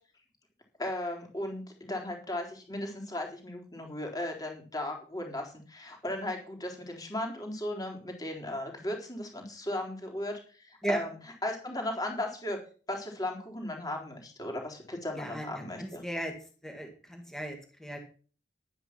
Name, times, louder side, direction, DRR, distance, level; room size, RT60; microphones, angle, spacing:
voice 1, 0.8-11.2 11.4-12.6 12.9-16.0, left 1 dB, 20° left, 2 dB, 3.7 m, -36 dB
voice 2, 15.1-15.5 15.8-16.3 16.6-18.0, right 1 dB, ahead, 3 dB, 1.9 m, -35 dB
11.5 x 9.6 x 6.0 m, 0.39 s
head